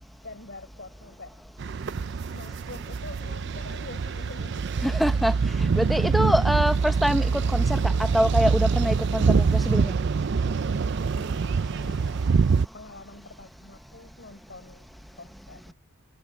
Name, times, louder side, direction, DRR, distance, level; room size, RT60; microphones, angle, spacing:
voice 1, 0.2-1.4 2.3-4.7 10.5-12.2 12.7-15.7, left 2 dB, 50° left, 5.0 m, -46 dB
sound 1, 1.6-12.7, right 5 dB, 50° right, 0.4 m, -25 dB
voice 2, 4.8-5.3 5.8-9.9, equal, ahead, 0.9 m, -25 dB
head